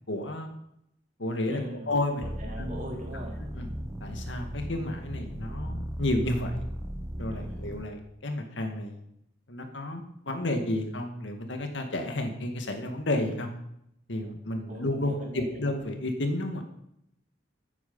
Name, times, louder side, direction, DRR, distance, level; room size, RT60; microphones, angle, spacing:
voice 1, 0.1-0.5 1.2-2.2 2.6-2.8 3.5-3.7 4.0-6.7 7.2-9.0 9.5-13.5 14.1-16.6, left 1 dB, 70° left, 5 dB, 2.0 m, -31 dB
voice 2, 1.5-1.9 2.2-3.4 7.3-7.6 14.7-15.6, right 1 dB, 40° right, -2 dB, 4.1 m, -41 dB
sound 1, 2.2-7.9, equal, 15° right, 1.0 m, -37 dB
14.5 x 9.3 x 5.5 m, 0.77 s
head